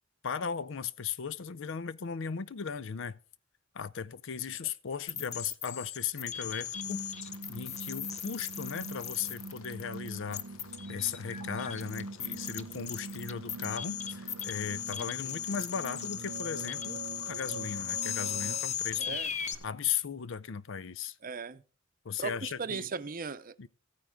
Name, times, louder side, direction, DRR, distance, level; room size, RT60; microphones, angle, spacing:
voice 1, 0.2-3.2 3.7-7.2 7.5-10.4 10.9-19.2 19.6-21.2 22.0-22.9 23.6-23.7, left 7 dB, 65° left, 0.5 m, -37 dB
sound 1, 5.1-19.6, left 9 dB, 35° left, 0.8 m, -38 dB
sound 2, 6.3-19.7, left 4 dB, 85° left, 0.9 m, -56 dB
sound 3, 6.7-18.6, right 3 dB, 90° right, 0.9 m, -44 dB
voice 2, 19.0-19.3 21.2-21.6 22.2-23.5, right 5 dB, 45° right, 0.7 m, -37 dB
14.0 x 9.4 x 3.7 m
head